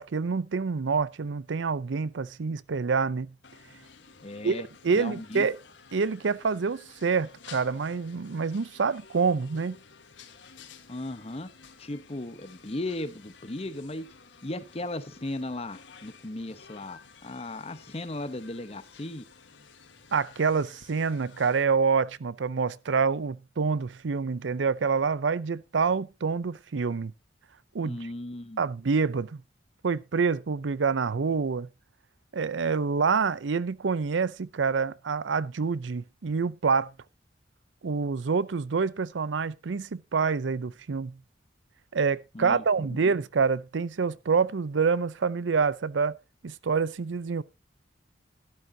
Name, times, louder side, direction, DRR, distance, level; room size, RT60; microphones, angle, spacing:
voice 1, 0.0-3.3 4.4-5.6 5.9-9.8 20.1-27.1 27.7-28.0 28.6-29.4 29.8-31.7 32.3-36.9 37.8-41.2 41.9-46.1 46.4-47.4, right 5 dB, 85° right, 0.5 m, -27 dB
sound 1, 3.4-21.6, left 5 dB, 85° left, 1.5 m, -53 dB
voice 2, 4.2-4.7 4.9-5.5 10.9-11.5 11.8-14.1 14.4-19.3 27.8-28.6 42.3-43.0, left 1 dB, 35° left, 0.9 m, -36 dB
12.5 x 12.0 x 2.8 m
head